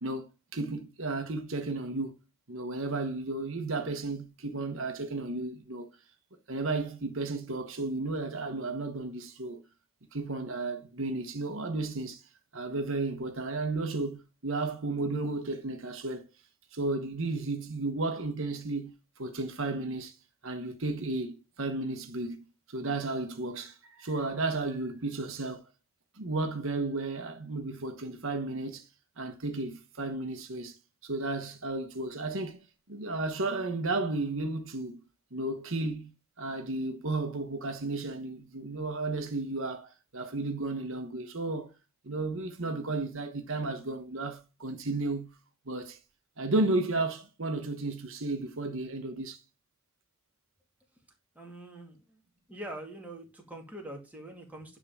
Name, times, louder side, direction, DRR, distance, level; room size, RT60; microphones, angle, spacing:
voice 1, 0.0-2.1 2.5-5.9 6.5-9.6 10.1-12.3 12.5-16.3 16.7-20.2 20.4-22.4 22.7-25.7 26.2-28.8 29.2-30.7 31.0-32.6 32.9-35.0 35.3-36.1 36.4-41.7 42.0-45.3 45.7-46.0 46.4-49.4, right 2 dB, 65° right, 1.3 m, -33 dB
voice 2, 51.3-52.2 52.5-54.8, right 1 dB, 5° right, 2.5 m, -44 dB
10.5 x 3.8 x 7.2 m
head